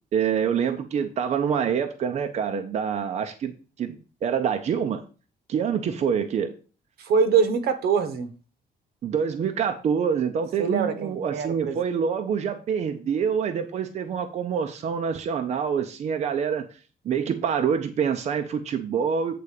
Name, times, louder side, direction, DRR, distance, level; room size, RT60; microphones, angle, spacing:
voice 1, 0.1-5.0 5.5-6.5 9.0-16.8 17.0-19.3, right 7 dB, 40° right, 0.7 m, -26 dB
voice 2, 7.0-8.3 10.6-11.8, right 6 dB, 70° right, 1.2 m, -23 dB
8.5 x 3.9 x 6.5 m
cardioid pair, 175°, 17 cm